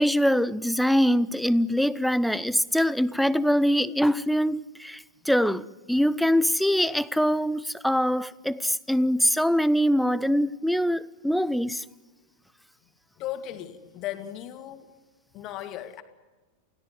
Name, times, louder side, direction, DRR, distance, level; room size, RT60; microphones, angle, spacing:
voice 1, 0.0-11.8, equal, ahead, 0.7 m, -23 dB
voice 2, 13.2-14.9 15.3-16.0, left 12 dB, 35° left, 2.4 m, -36 dB
28.5 x 17.0 x 9.3 m
figure-of-eight pair, 90°, 0 cm